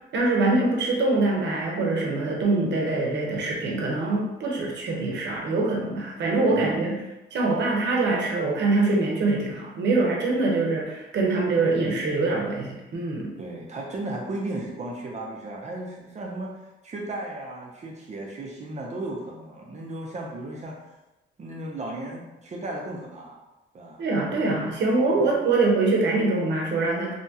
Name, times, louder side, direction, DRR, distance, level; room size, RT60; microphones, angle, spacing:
voice 1, 0.1-6.9 7.3-13.3 24.0-27.1, right 3 dB, 65° right, -2 dB, 0.8 m, -24 dB
voice 2, 6.5-6.9 13.4-16.6 16.8-20.8 21.4-23.4 23.7-24.0 25.1-25.3, right 2 dB, 35° right, -1 dB, 0.6 m, -35 dB
2.8 x 2.2 x 2.7 m, 1.0 s
cardioid pair, 90°, 20 cm